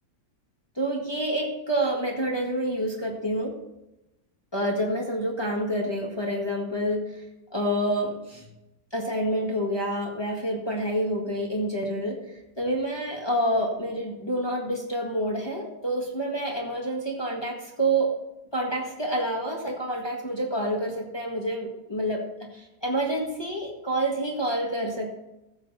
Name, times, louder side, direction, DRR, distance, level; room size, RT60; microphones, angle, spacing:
voice 1, 0.8-3.5 4.5-7.0 7.5-8.4 8.9-12.2 12.6-18.2 18.5-22.2 22.5-25.1, right 1 dB, 15° left, -1 dB, 1.6 m, -28 dB
14.5 x 7.5 x 4.1 m, 0.94 s
omnidirectional pair, 1.8 m